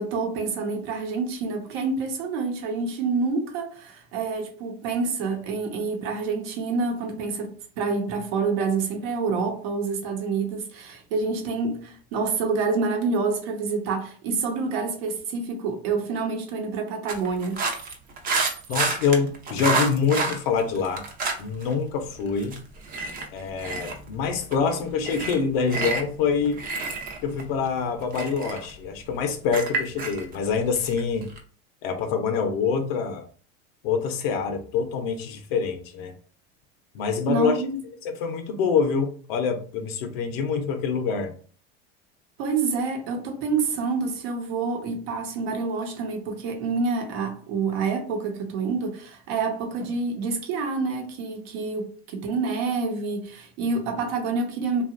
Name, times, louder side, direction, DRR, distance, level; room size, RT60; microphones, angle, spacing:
voice 1, 0.0-17.6 37.3-37.8 42.4-54.8, right 4 dB, 75° right, 0.9 m, -27 dB
sound 1, 17.1-21.7 22.0-31.4, right 3 dB, 30° right, 0.5 m, -29 dB
voice 2, 18.7-21.0 21.4-22.6 23.3-26.6 27.2-31.3 31.8-33.3 33.8-36.1 36.9-37.5 38.0-41.3, left 6 dB, 75° left, 0.6 m, -25 dB
2.9 x 2.4 x 2.4 m
supercardioid pair, 125°, 31 cm